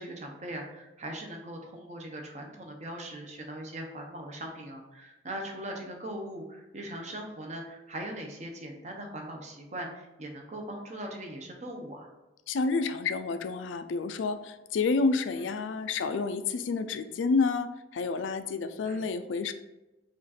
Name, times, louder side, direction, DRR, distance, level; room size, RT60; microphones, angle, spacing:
voice 1, 0.0-12.1 18.8-19.1, right 1 dB, 40° right, 2 dB, 0.7 m, -40 dB
voice 2, 12.5-19.5, left 4 dB, 85° left, 10 dB, 0.4 m, -29 dB
5.0 x 2.5 x 4.1 m, 1.0 s
head